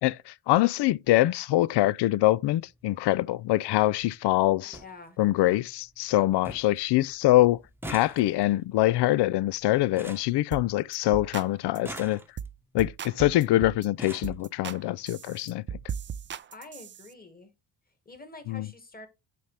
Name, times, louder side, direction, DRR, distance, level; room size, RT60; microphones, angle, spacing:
voice 1, 0.0-4.8 5.2-7.6 7.9-12.2 12.7-15.6 18.5-18.7, left 16 dB, 60° left, 0.5 m, -24 dB
sound 1, 2.6-2.8 4.0-4.1 4.4-4.5 4.7-4.9 5.4-5.9 6.1-6.2 6.4-6.8 7.1-11.1 11.7-12.6 13.4-13.5 13.8-14.4 15.3-15.4 15.8-16.0 16.2-16.4, right 1 dB, 5° right, 1.0 m, -44 dB
voice 2, 4.6-5.2 16.5-17.5 18.1-19.1, left 3 dB, 20° left, 1.9 m, -47 dB
sound 2, 10.5-10.7 10.9-11.5 11.8-12.0 12.4-12.5 12.8-13.9 14.2-14.8 15.1-17.1, right 8 dB, 30° right, 0.3 m, -37 dB
9.3 x 4.3 x 3.3 m
cardioid pair, 110°, 46 cm